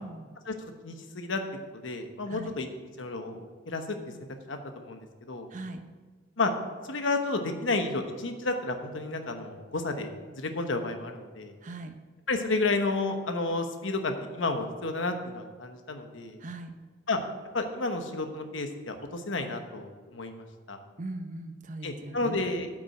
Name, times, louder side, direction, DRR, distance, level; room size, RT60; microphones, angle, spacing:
voice 1, 0.5-1.4 1.8-2.7 3.0-4.0 4.5-5.5 6.4-6.5 6.9-11.5 12.3-16.4 17.1-17.2 17.5-20.8 21.8-22.7, left 3 dB, 80° left, 6 dB, 1.1 m, -31 dB
voice 2, 11.6-11.9 16.4-16.8 21.0-22.4, right 2 dB, 40° right, 7 dB, 0.8 m, -39 dB
9.0 x 6.1 x 6.5 m, 1.4 s
head